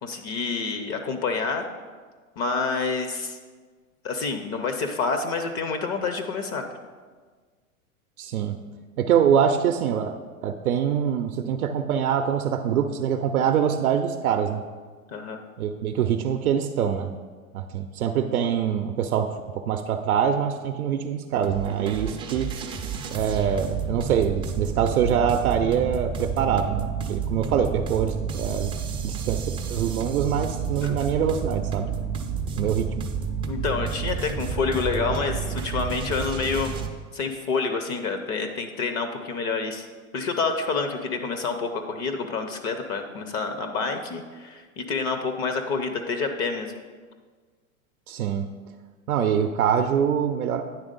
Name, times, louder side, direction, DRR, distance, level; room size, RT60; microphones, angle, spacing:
voice 1, 0.0-1.7 2.4-3.4 4.0-6.6 15.1-15.4 30.8-31.2 33.5-36.7 37.1-39.9 40.1-46.7, left 4 dB, 35° left, 6 dB, 0.6 m, -28 dB
voice 2, 8.2-8.5 9.0-10.1 10.4-14.6 15.6-17.1 17.5-19.3 19.7-22.5 23.1-28.7 29.0-31.9 32.6-33.0 48.1-48.5 49.1-50.6, right 8 dB, 85° right, 6 dB, 0.6 m, -24 dB
sound 1, 21.4-36.9, right 6 dB, 15° right, 0.3 m, -30 dB
9.5 x 3.5 x 5.1 m, 1.5 s
hypercardioid pair, 105°, 42 cm